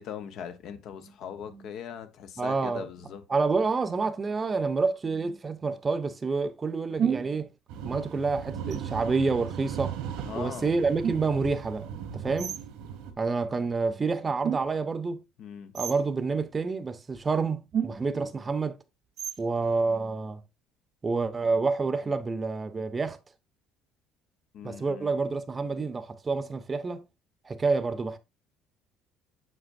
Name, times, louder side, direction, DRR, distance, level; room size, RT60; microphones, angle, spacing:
voice 1, 0.0-3.2 10.2-10.7 15.4-15.7 24.5-25.1, left 8 dB, 65° left, 1.1 m, -40 dB
voice 2, 2.4-2.8 3.3-7.5 7.8-10.0 10.3-11.9 12.1-12.5 13.2-15.2 15.7-18.8 19.4-20.4 21.0-23.2 24.6-27.0 27.5-28.2, right 4 dB, 25° right, 0.8 m, -28 dB
sound 1, 7.0-7.4 8.7-9.2 10.2-10.4 11.0-11.5 12.4-12.6 14.4-14.9 15.7-16.1 17.1-17.3 17.7-18.3 19.2-19.6, right 8 dB, 50° right, 0.5 m, -32 dB
sound 2, 7.7-13.1, right 8 dB, 80° right, 1.6 m, -38 dB
7.8 x 5.5 x 2.6 m
supercardioid pair, 85°, 0 cm